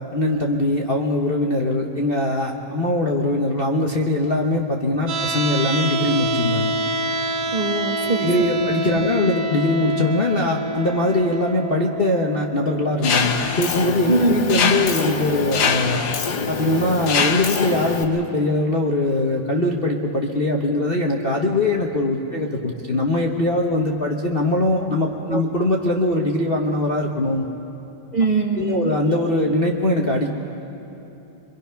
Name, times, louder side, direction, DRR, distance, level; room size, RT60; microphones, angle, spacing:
voice 1, 0.1-6.7 8.2-16.0 16.5-27.4 28.6-30.3, left 2 dB, 35° left, 0 dB, 1.0 m, -21 dB
sound 1, 5.1-17.1, right 1 dB, 75° right, 2.4 m, -28 dB
voice 2, 7.5-8.3 8.6-9.0 14.1-14.6 25.3-25.4 28.1-28.9, right 3 dB, 25° right, -1 dB, 1.3 m, -22 dB
Mechanisms, 13.0-18.0, left 6 dB, 60° left, 1.6 m, -23 dB
25.0 x 24.0 x 5.8 m, 3.0 s
omnidirectional pair, 2.1 m